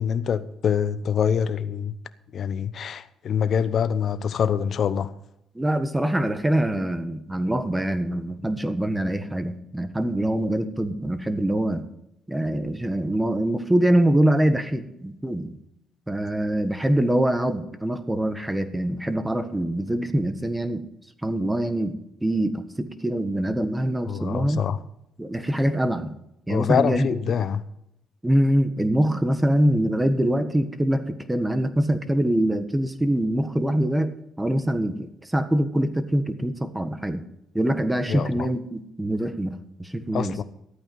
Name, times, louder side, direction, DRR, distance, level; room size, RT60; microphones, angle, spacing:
voice 1, 0.0-1.9 2.3-5.1 24.1-24.8 26.5-27.6 38.1-38.5 40.1-40.4, left 7 dB, 60° left, 0.8 m, -25 dB
voice 2, 5.5-11.8 12.3-15.6 16.1-20.8 21.2-21.9 22.2-24.6 25.2-26.1 26.5-27.3 28.2-37.2 37.5-40.4, right 1 dB, 10° right, 1.4 m, -24 dB
13.5 x 9.0 x 5.5 m
cardioid pair, 90°, 0 cm